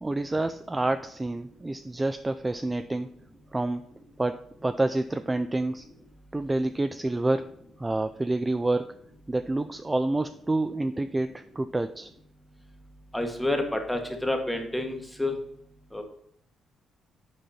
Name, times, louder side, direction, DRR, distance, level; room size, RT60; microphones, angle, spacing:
voice 1, 0.0-3.1 3.5-3.8 4.2-5.9 6.3-8.9 9.3-12.1, right 2 dB, 15° right, 9 dB, 0.3 m, -28 dB
voice 2, 13.1-15.3 15.9-16.0, left 1 dB, 5° left, 3 dB, 1.4 m, -29 dB
7.7 x 4.6 x 4.2 m, 0.71 s
cardioid pair, 90°, 0 cm